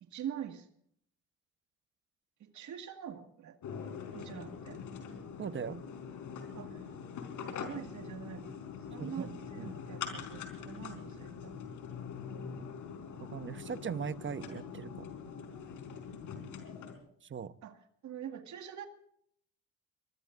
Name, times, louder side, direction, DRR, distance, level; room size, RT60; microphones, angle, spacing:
voice 1, 0.0-0.7 2.4-3.6 4.1-4.8 6.5-6.9 7.4-8.6 8.9-11.5 15.2-15.3 17.6-17.8 18.0-18.9, right 9 dB, 70° right, 6 dB, 2.0 m, -44 dB
sound 1, 3.6-17.0, left 6 dB, 80° left, 4.4 m, -43 dB
voice 2, 5.4-5.8 9.0-9.7 13.2-15.1 17.3-17.5, right 7 dB, 40° right, 13 dB, 1.0 m, -39 dB
23.5 x 22.5 x 2.6 m, 0.66 s
cardioid pair, 90°, 30 cm